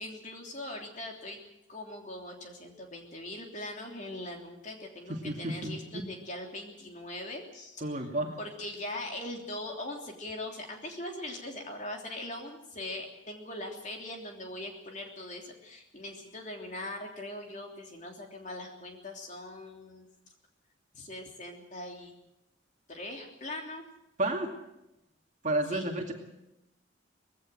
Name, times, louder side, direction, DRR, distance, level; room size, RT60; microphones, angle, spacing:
voice 1, 0.0-1.4 1.7-8.1 8.4-20.1 20.9-22.1 22.9-23.9 25.7-25.8, left 1 dB, 35° left, 2 dB, 3.2 m, -41 dB
voice 2, 5.1-5.8 7.8-8.4 24.2-24.5 25.4-26.1, right 1 dB, 35° right, 2 dB, 2.5 m, -31 dB
20.5 x 16.5 x 7.8 m, 0.90 s
head